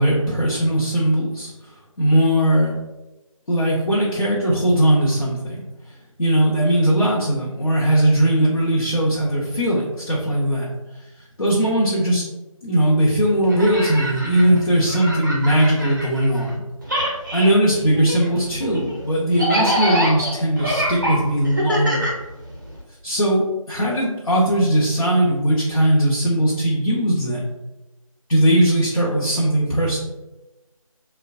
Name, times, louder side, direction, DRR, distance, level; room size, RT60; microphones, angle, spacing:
voice 1, 0.0-1.5 2.0-2.7 3.5-5.6 6.2-10.7 11.4-12.2 12.6-16.6 17.3-22.1 23.0-27.4 28.3-30.0, right 1 dB, 65° left, -6 dB, 0.7 m, -19 dB
sound 1, 13.4-16.6 16.8-22.8, equal, 35° right, 0.5 m, -25 dB
3.1 x 2.1 x 2.5 m, 1.0 s
figure-of-eight pair, 170°, 18 cm